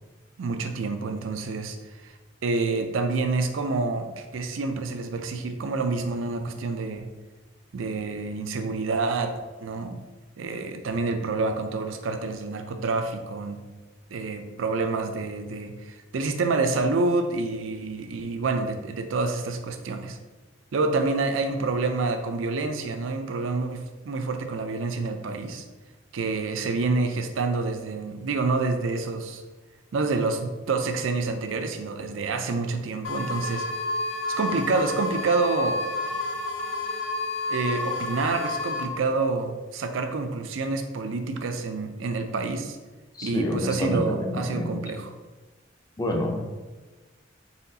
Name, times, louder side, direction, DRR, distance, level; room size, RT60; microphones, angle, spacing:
voice 1, 0.4-1.8 2.0-2.1 2.4-7.1 7.7-10.0 10.4-13.6 14.1-20.2 20.7-25.6 26.1-29.4 29.9-33.7 34.3-35.8 37.5-42.8 43.2-45.1, right 3 dB, 80° right, 7 dB, 0.5 m, -28 dB
sound 1, 33.0-38.8, left 2 dB, 75° left, 0.6 m, -30 dB
voice 2, 43.2-44.8 46.0-46.4, left 1 dB, 20° left, 1 dB, 0.5 m, -28 dB
4.2 x 3.8 x 2.7 m, 1.2 s
head